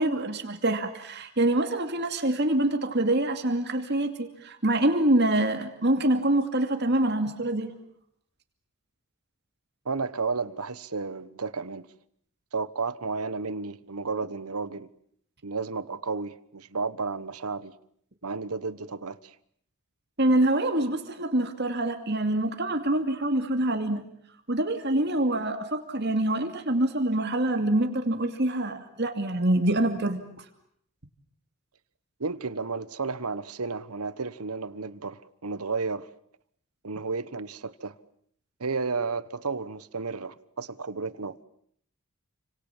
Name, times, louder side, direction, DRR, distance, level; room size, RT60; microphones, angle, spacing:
voice 1, 0.0-7.7 20.2-24.0 24.5-30.4, right 1 dB, 50° right, 2.6 m, -25 dB
voice 2, 9.8-11.9 12.5-14.9 15.4-17.7 18.2-19.3 32.2-36.1 36.8-37.9 38.6-41.4, right 4 dB, 85° right, 1.2 m, -32 dB
29.5 x 26.5 x 7.4 m
head